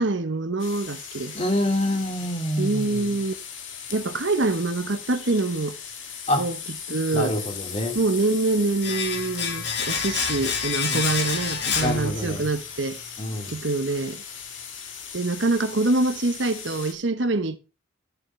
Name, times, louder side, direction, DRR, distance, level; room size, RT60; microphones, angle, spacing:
voice 1, 0.0-1.4 2.6-3.3 3.9-5.8 6.4-7.4 7.9-13.0 13.5-14.2 15.1-17.6, right 2 dB, 70° right, 1.0 m, -25 dB
sound 1, 0.6-16.9, left 7 dB, 85° left, 2.1 m, -38 dB
voice 2, 1.3-3.1 6.3-6.5 7.1-8.0 10.9-11.0 11.8-12.4 13.2-13.5, left 1 dB, 35° left, 2.9 m, -26 dB
Domestic sounds home sounds, 8.8-12.6 12.9-13.0, left 6 dB, 60° left, 1.9 m, -28 dB
13.5 x 7.2 x 3.3 m
head